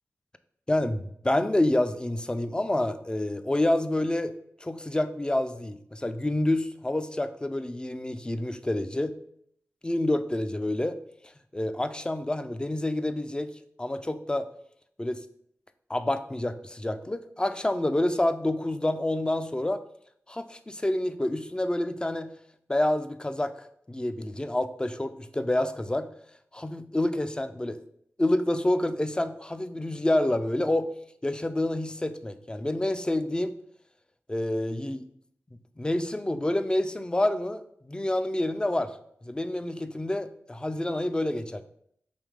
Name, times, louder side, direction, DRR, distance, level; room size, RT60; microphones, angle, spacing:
voice 1, 0.7-4.3 4.6-9.2 9.8-11.0 11.5-13.5 13.8-14.5 15.0-15.2 15.9-19.8 20.3-22.3 22.7-26.1 26.5-27.8 28.2-30.9 31.2-33.5 34.3-35.0 35.8-38.9 39.2-41.6, left 1 dB, 15° left, 11 dB, 0.4 m, -28 dB
3.5 x 3.2 x 4.8 m, 0.69 s
cardioid pair, 55°, 5 cm